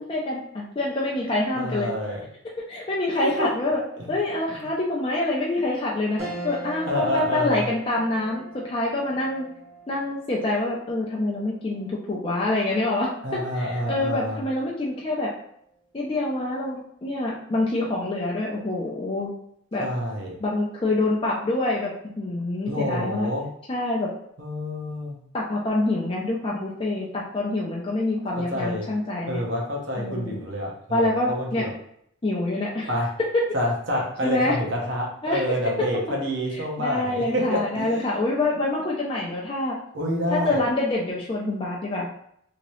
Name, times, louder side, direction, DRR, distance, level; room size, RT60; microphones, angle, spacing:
voice 1, 0.1-1.9 2.7-3.8 4.1-9.5 9.9-15.3 15.9-19.3 19.7-19.9 20.4-23.3 23.7-24.1 25.3-29.4 30.0-30.4 30.9-31.7 32.2-32.9 33.3-33.5 34.2-34.6 35.2-35.9 36.5-39.8 40.3-42.1, left 2 dB, 25° left, -4 dB, 0.4 m, -26 dB
voice 2, 1.5-2.2 3.2-3.5 4.0-4.1 4.6-4.7 6.9-7.7 13.2-14.4 19.8-20.4 22.7-23.5 24.4-25.2 28.4-28.9 29.3-31.7 32.9-33.2 33.5-38.1 39.9-40.6, equal, 60° right, -1 dB, 0.8 m, -28 dB
sound 1, 6.2-15.8 16.3-16.4 17.7-18.1, right 2 dB, 30° right, 1.0 m, -43 dB
2.9 x 2.8 x 3.0 m, 0.70 s
head